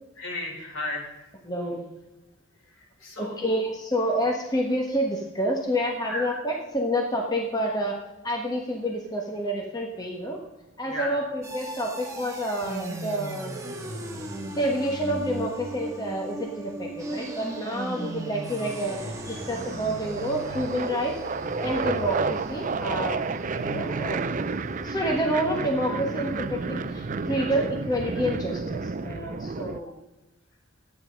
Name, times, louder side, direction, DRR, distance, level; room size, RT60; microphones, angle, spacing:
voice 1, 0.2-1.1 2.6-3.4 6.0-6.4 10.8-11.2 27.1-27.2 29.2-29.3, left 1 dB, 70° left, -1 dB, 4.5 m, -35 dB
voice 2, 1.4-1.9 3.2-10.4 10.8-13.5 14.6-21.2 21.6-23.2 23.5-24.2 24.8-29.9, equal, 20° left, 0 dB, 1.3 m, -28 dB
sound 1, 11.4-28.7, right 1 dB, 15° right, 1.4 m, -37 dB
sound 2, 11.9-13.0 14.9-16.1 17.1-17.6 17.9-29.8, right 4 dB, 35° right, 0.5 m, -32 dB
12.5 x 9.6 x 5.3 m, 1.0 s
head